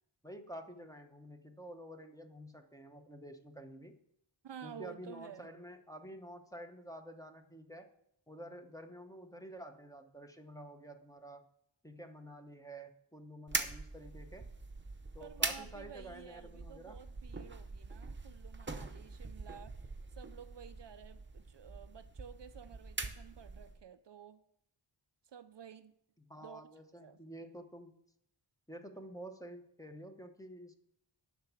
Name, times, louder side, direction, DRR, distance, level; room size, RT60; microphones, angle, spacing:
voice 1, 0.2-4.0 4.6-7.9 8.3-11.4 11.8-14.4 15.1-17.0 26.2-27.9 28.7-30.8, right 1 dB, 5° left, 0.9 m, -50 dB
voice 2, 4.4-5.5 15.2-19.8 20.2-24.4 25.2-25.9 26.4-26.6 26.9-27.2, right 8 dB, 60° right, 0.5 m, -52 dB
sound 1, 13.5-23.8, right 3 dB, 25° right, 0.8 m, -43 dB
7.5 x 5.9 x 7.2 m
wide cardioid pair, 90°, 49 cm